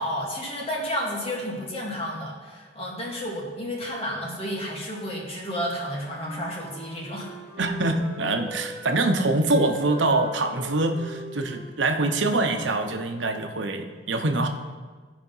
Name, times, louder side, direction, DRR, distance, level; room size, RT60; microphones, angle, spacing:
voice 1, 0.0-7.3, equal, 35° left, -3 dB, 2.3 m, -31 dB
Wind instrument woodwind instrument, 5.8-9.1 9.4-13.2, right 1 dB, 15° left, 2.3 m, -41 dB
voice 2, 7.6-14.5, right 2 dB, 85° right, 5 dB, 0.9 m, -24 dB
15.0 x 5.1 x 5.5 m, 1.4 s
head